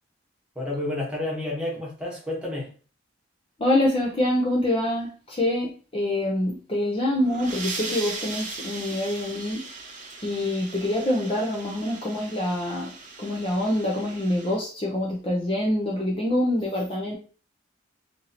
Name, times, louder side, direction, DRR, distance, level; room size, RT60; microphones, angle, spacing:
voice 1, 0.5-2.7, left 1 dB, 5° right, -4 dB, 1.1 m, -30 dB
voice 2, 3.6-9.6 10.2-12.9 13.2-17.1, left 1 dB, 25° left, -2 dB, 0.6 m, -25 dB
sound 1, 7.2-14.6, right 3 dB, 40° right, 0.9 m, -38 dB
2.8 x 2.7 x 4.1 m, 0.37 s
head